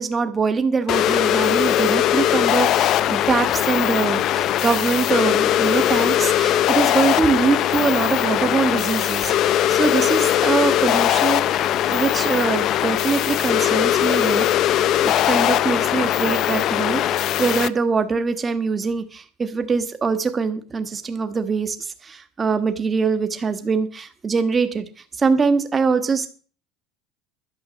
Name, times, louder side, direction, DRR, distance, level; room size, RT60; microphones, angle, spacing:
voice 1, 0.0-11.6 11.9-14.5 15.0-21.8 22.0-24.9 25.2-26.3, right 5 dB, 20° right, 9 dB, 1.4 m, -23 dB
sound 1, 0.9-17.7, left 12 dB, 45° left, 0.6 m, -20 dB
12.0 x 7.4 x 6.9 m, 0.40 s
cardioid pair, 150°, 0 cm